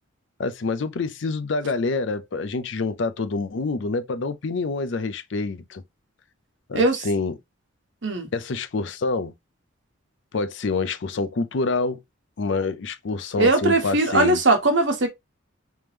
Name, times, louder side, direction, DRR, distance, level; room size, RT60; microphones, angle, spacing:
voice 1, 0.4-5.8 6.7-7.3 8.3-9.3 10.3-12.0 12.4-14.4, left 3 dB, 60° left, 0.5 m, -27 dB
voice 2, 13.4-15.1, right 2 dB, 60° right, 1.2 m, -20 dB
3.5 x 2.9 x 3.2 m
head